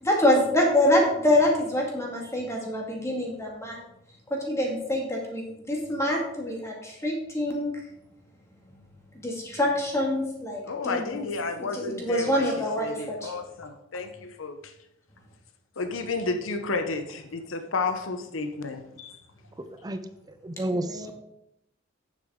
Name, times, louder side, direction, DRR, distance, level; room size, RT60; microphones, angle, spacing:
voice 1, 0.0-3.8 4.3-7.7 9.1-11.1 11.6-13.3 20.7-21.1, left 1 dB, 15° left, -1 dB, 2.0 m, -26 dB
voice 2, 10.7-12.5 12.8-14.7 15.8-19.2, left 3 dB, 85° left, 7 dB, 0.8 m, -31 dB
voice 3, 19.6-20.0 20.4-21.1, right 1 dB, 20° right, 10 dB, 0.5 m, -31 dB
9.0 x 7.4 x 3.7 m, 0.81 s
head